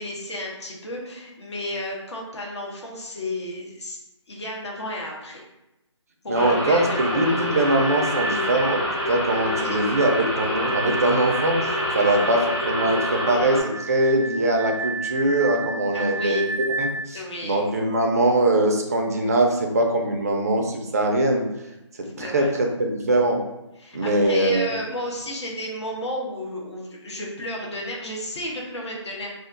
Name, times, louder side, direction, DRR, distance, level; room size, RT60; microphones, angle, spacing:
voice 1, 0.0-4.0 4.3-5.4 6.2-7.6 9.4-10.3 11.9-12.4 15.9-16.4 17.1-17.6 22.0-22.6 23.8-29.3, left 1 dB, 65° left, -2 dB, 0.8 m, -33 dB
sound 1, 6.3-13.6, left 1 dB, 20° left, 1.1 m, -27 dB
voice 2, 6.3-16.4 16.8-21.4 22.2-23.4 23.9-24.7, right 1 dB, 30° right, 2 dB, 0.3 m, -22 dB
sound 2, 6.9-17.1, right 3 dB, 35° left, 0.7 m, -33 dB
2.3 x 2.1 x 3.7 m, 0.93 s
figure-of-eight pair, 155°, 16 cm